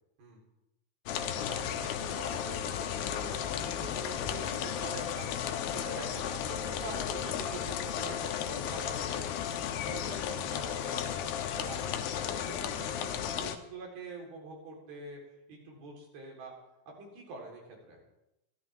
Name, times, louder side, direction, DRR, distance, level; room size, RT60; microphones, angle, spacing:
sound 1, 1.1-13.6, left 9 dB, 85° left, 2.8 m, -34 dB
voice 1, 1.3-9.3 9.7-11.2 11.6-15.2 15.5-16.5 16.9-18.0, right 2 dB, 80° right, -1 dB, 5.8 m, -46 dB
27.0 x 12.5 x 3.6 m, 0.88 s
omnidirectional pair, 4.4 m